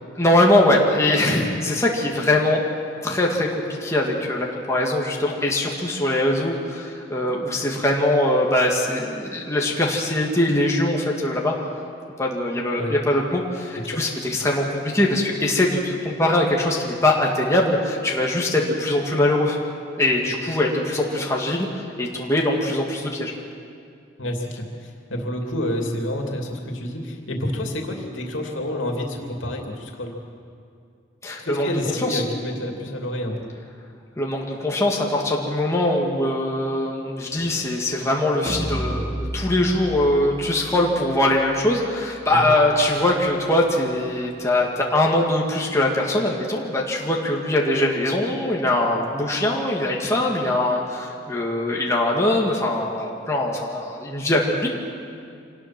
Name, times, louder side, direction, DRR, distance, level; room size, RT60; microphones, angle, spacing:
voice 1, 0.2-2.6 3.0-11.5 12.2-19.6 20.0-21.7 22.0-23.3 31.2-31.7 32.0-32.2 34.2-54.7, left 1 dB, 15° left, -2 dB, 2.1 m, -22 dB
voice 2, 24.2-30.1 31.4-33.5 42.3-42.5, left 1 dB, 80° left, 1 dB, 2.9 m, -29 dB
sound 1, 38.5-44.1, right 1 dB, 20° right, 1.2 m, -34 dB
26.0 x 19.5 x 6.1 m, 2.4 s
head